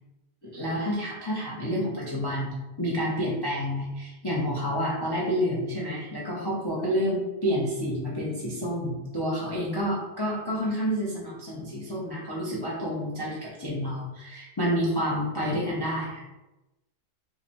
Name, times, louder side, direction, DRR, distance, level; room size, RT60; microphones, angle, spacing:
voice 1, 0.4-16.2, equal, 40° left, -6 dB, 0.3 m, -29 dB
4.8 x 2.1 x 2.9 m, 1.0 s
omnidirectional pair, 1.7 m